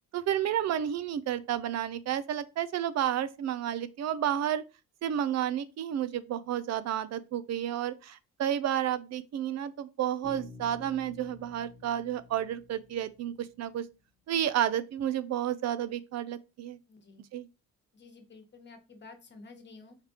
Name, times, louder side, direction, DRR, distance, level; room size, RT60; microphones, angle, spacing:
voice 1, 0.1-4.6 5.0-13.9 14.3-16.8 17.3-17.5, right 10 dB, 60° right, 0.5 m, -31 dB
Bass guitar, 10.2-13.9, left 3 dB, ahead, 1.2 m, -51 dB
voice 2, 16.9-17.3 17.9-20.0, left 3 dB, 35° left, 1.2 m, -51 dB
4.9 x 3.3 x 2.9 m
cardioid pair, 90°, 30 cm